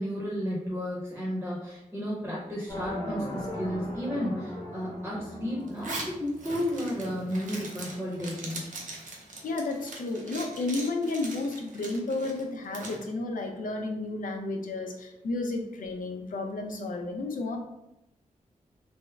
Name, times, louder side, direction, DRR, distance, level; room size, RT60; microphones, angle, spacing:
voice 1, 0.0-8.7, equal, 10° right, -6 dB, 0.8 m, -33 dB
sound 1, 2.7-6.7, left 1 dB, 25° left, 1.3 m, -38 dB
Zipper (clothing), 5.7-13.0, right 2 dB, 70° right, 0.6 m, -41 dB
voice 2, 9.4-17.6, left 2 dB, 85° left, 3 dB, 0.5 m, -32 dB
3.4 x 2.1 x 3.3 m, 0.86 s
wide cardioid pair, 160°, 14 cm